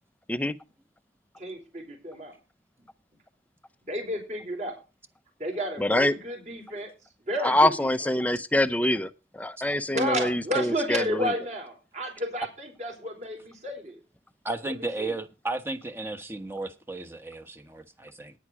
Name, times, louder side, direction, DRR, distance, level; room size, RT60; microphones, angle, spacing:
voice 1, 1.4-2.3 3.8-4.8 5.4-6.9 7.3-8.1 9.9-14.0 14.6-14.7 15.0-15.1, equal, 40° right, 4.4 m, -32 dB
voice 2, 5.8-6.1 7.4-9.1 9.3-11.3, left 1 dB, 10° left, 0.6 m, -25 dB
voice 3, 14.4-18.3, right 2 dB, 15° right, 1.2 m, -34 dB
10.0 x 9.9 x 4.8 m
head